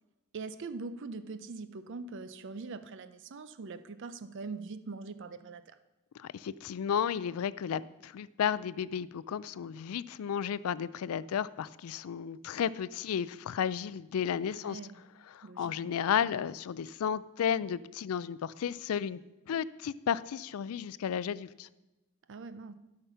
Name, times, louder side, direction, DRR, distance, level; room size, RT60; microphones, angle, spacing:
voice 1, 0.3-5.8 14.5-15.0 15.4-15.9 22.3-22.7, right 4 dB, 60° right, 13 dB, 0.5 m, -42 dB
voice 2, 6.2-14.8 15.3-19.2 19.5-21.7, left 8 dB, 85° left, 18 dB, 0.4 m, -33 dB
11.5 x 5.8 x 5.6 m, 1.0 s
head